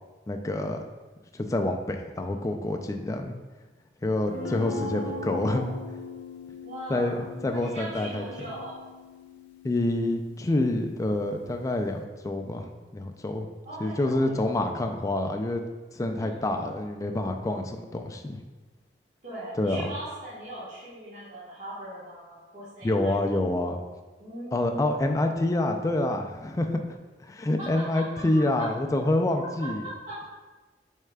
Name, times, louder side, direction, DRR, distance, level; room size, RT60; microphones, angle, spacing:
voice 1, 0.3-0.8 1.3-3.3 4.0-5.6 6.9-8.2 9.6-13.6 13.8-15.6 15.9-18.4 19.6-19.9 22.8-23.8 24.5-29.8, left 1 dB, 20° left, 4 dB, 0.3 m, -27 dB
Guitar, 4.3-12.0, left 3 dB, 80° left, 0.5 m, -41 dB
voice 2, 4.4-5.8 6.6-7.2 7.5-8.9 13.6-14.5 16.0-16.8 19.2-23.1 24.2-24.9 27.6-28.0 29.4-30.2, right 1 dB, 45° right, -12 dB, 1.3 m, -40 dB
6.4 x 3.6 x 2.3 m, 1.3 s
head